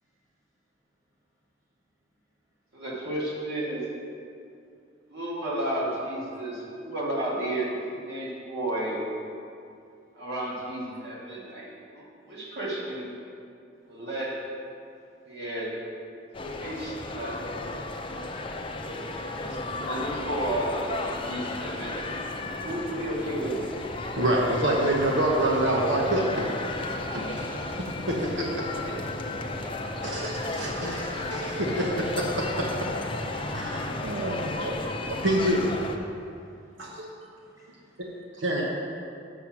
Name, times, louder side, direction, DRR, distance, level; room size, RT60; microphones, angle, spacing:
voice 1, 2.7-3.8 5.1-9.0 10.1-11.7 11.9-13.1 13.8-14.4 15.3-15.7 16.4-17.4 18.7-22.1 22.4-23.7 28.8-29.7, right 1 dB, 60° right, -5 dB, 2.3 m, -33 dB
sound 1, 16.3-36.0, left 2 dB, 30° left, 0.6 m, -34 dB
voice 2, 24.2-26.5 27.1-28.3 30.0-32.1 32.6-32.7 33.5-34.7 35.1-35.6 36.8-37.1 38.4-38.6, right 1 dB, 90° right, -2 dB, 1.1 m, -27 dB
voice 3, 34.3-34.8 36.1-37.0 37.4-38.2, equal, 20° right, -7 dB, 2.4 m, -59 dB
7.4 x 6.9 x 6.0 m, 2.5 s
head